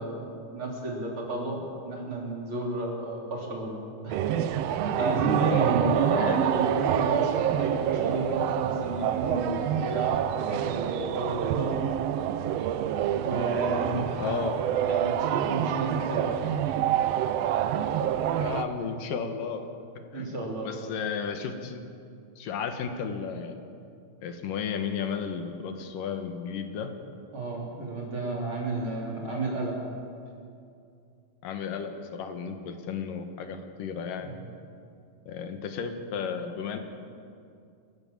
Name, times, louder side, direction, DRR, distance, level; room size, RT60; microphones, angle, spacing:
voice 1, 0.0-4.2 4.8-11.7 13.2-14.4 14.8-16.5 17.8-17.9 20.1-20.7 27.3-29.8 34.3-34.4, right 2 dB, 40° right, -2 dB, 4.3 m, -32 dB
sound 1, 4.1-18.6, right 10 dB, 90° right, 1.4 m, -27 dB
voice 2, 5.5-6.4 13.9-14.6 18.3-19.7 20.1-21.8 22.4-23.6 24.2-26.9 31.4-34.4 35.3-36.8, left 6 dB, 80° left, 6 dB, 3.1 m, -34 dB
Wind instrument woodwind instrument, 6.4-12.9, left 1 dB, 35° left, 2.5 m, -44 dB
30.0 x 13.0 x 7.4 m, 2.5 s
omnidirectional pair, 3.8 m